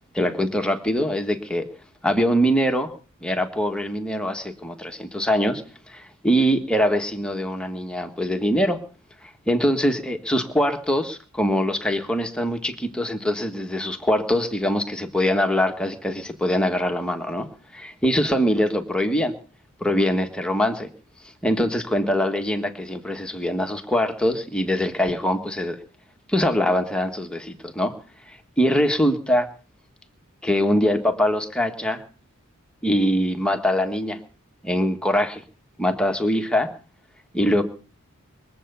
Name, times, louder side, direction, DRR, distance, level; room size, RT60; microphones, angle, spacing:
voice 1, 0.1-1.6 2.0-2.9 3.2-5.6 5.9-8.8 9.5-17.5 17.7-19.3 19.8-20.9 21.4-25.8 26.3-27.9 28.6-29.5 30.4-32.0 32.8-34.2 34.6-35.4 35.8-36.7 37.3-37.6, equal, 5° left, 4 dB, 1.6 m, -23 dB
22.5 x 7.9 x 6.9 m, 0.39 s
head